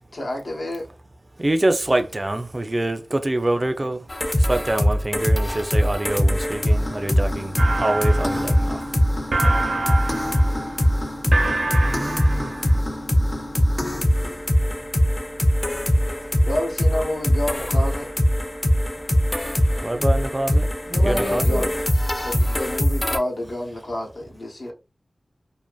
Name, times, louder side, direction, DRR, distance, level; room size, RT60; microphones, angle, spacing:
voice 1, 0.1-0.9 3.6-3.9 16.5-18.1 21.3-21.7 22.2-24.7, left 1 dB, 75° left, 0.8 m, -29 dB
voice 2, 1.4-4.0 4.5-7.5 7.8-8.8 11.9-12.5 19.8-20.7 21.0-21.5, right 1 dB, 30° right, 0.3 m, -25 dB
sound 1, 4.1-23.2, equal, 30° left, 0.5 m, -22 dB
sound 2, 7.6-12.8, right 2 dB, 90° right, 0.7 m, -27 dB
voice 3, 12.0-13.3 20.9-21.8, equal, 45° left, 1.0 m, -30 dB
2.5 x 2.5 x 2.2 m
wide cardioid pair, 80°, 0 cm